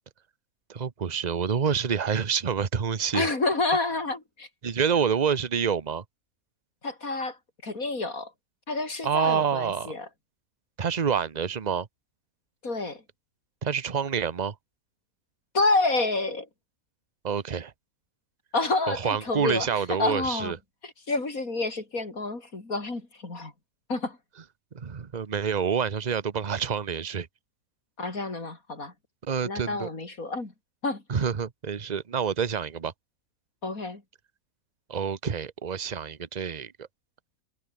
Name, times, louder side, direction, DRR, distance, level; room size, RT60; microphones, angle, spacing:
voice 1, 0.7-3.3 4.6-6.0 9.0-9.9 10.8-11.9 13.6-14.5 17.2-17.7 18.9-20.6 24.7-27.3 29.2-29.9 31.1-32.9 34.9-36.9, right 7 dB, 30° right, 1.0 m, -27 dB
voice 2, 3.1-4.5 6.8-8.3 8.7-10.1 12.6-13.0 15.5-16.5 18.5-20.6 20.8-23.5 23.9-24.2 28.0-28.9 29.4-30.5 30.8-31.2 33.6-34.0, left 3 dB, 70° left, 4.7 m, -29 dB
omnidirectional pair, 1.5 m